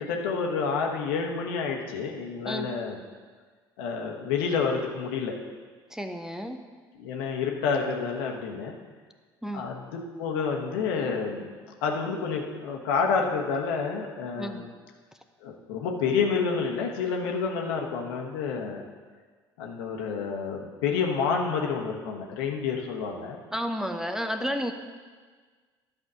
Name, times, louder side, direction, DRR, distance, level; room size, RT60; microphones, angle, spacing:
voice 1, 0.0-3.0 3.8-5.4 6.9-8.7 9.5-11.5 11.8-14.7 15.4-18.9 19.6-23.4, left 5 dB, 75° left, 1 dB, 1.1 m, -29 dB
voice 2, 5.9-6.6 9.4-9.7 14.4-14.7 23.5-24.7, equal, 5° right, 6 dB, 0.7 m, -31 dB
11.0 x 4.9 x 6.2 m, 1.5 s
hypercardioid pair, 60°, 12 cm